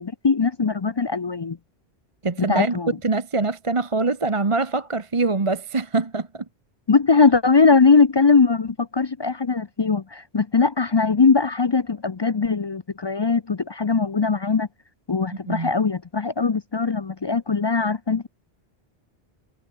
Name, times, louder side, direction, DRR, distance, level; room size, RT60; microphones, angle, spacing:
voice 1, 0.0-1.6 2.5-2.9 6.9-14.7 15.1-18.3, left 4 dB, 40° left, 0.4 m, -20 dB
voice 2, 2.2-6.4 15.5-15.7, right 3 dB, 30° right, 1.1 m, -24 dB
omnidirectional pair, 1.2 m